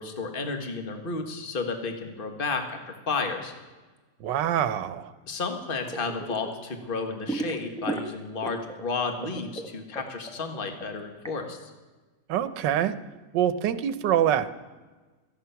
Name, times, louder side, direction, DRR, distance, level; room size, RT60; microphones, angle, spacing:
voice 1, 0.0-3.5 5.3-11.6, left 4 dB, 30° left, 5 dB, 1.6 m, -32 dB
voice 2, 4.2-5.1 12.3-13.0 13.3-14.5, right 10 dB, 85° right, 13 dB, 1.4 m, -25 dB
sound 1, 5.8-6.5 6.8-8.8 9.1-11.3, right 2 dB, 5° left, 0.7 m, -34 dB
17.0 x 14.0 x 5.8 m, 1.3 s
omnidirectional pair, 1.9 m